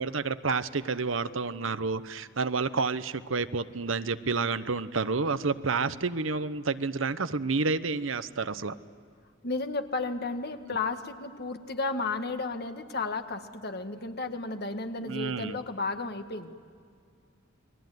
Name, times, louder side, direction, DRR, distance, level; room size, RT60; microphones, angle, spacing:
voice 1, 0.0-8.7 15.0-15.6, right 4 dB, 75° right, 12 dB, 0.9 m, -29 dB
voice 2, 9.4-16.5, left 3 dB, 55° left, 7 dB, 1.7 m, -33 dB
29.0 x 22.0 x 9.4 m, 2.2 s
head